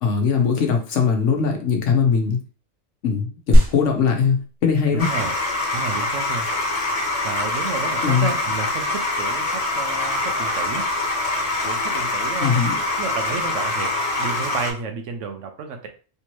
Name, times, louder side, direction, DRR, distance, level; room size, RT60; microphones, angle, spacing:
voice 1, 0.0-2.4 3.0-4.4 4.6-5.1 8.0-8.3 12.4-12.8, left 6 dB, 65° left, 2 dB, 1.1 m, -20 dB
sound 1, 3.5-13.5, equal, 25° right, 0.8 m, -27 dB
voice 2, 4.9-5.3 5.7-6.5 7.2-10.9 11.6-12.6 12.9-13.9 14.2-15.9, right 5 dB, 70° right, 6 dB, 0.9 m, -31 dB
sound 2, 5.0-14.7, left 2 dB, 35° left, 0.7 m, -24 dB
3.4 x 2.8 x 3.0 m, 0.38 s
omnidirectional pair, 1.4 m